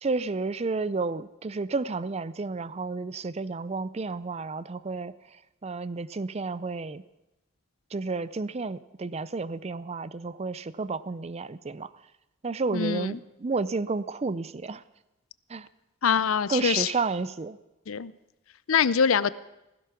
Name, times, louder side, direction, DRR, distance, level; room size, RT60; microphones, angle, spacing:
voice 1, 0.0-5.1 5.6-7.0 7.9-11.9 12.4-14.8 15.5-15.7 16.5-17.6, right 3 dB, 30° right, 17 dB, 0.5 m, -31 dB
voice 2, 12.7-13.2 16.0-16.9 17.9-18.1 18.7-19.3, left 7 dB, 80° left, 17 dB, 0.6 m, -24 dB
16.0 x 15.5 x 5.9 m, 0.94 s
head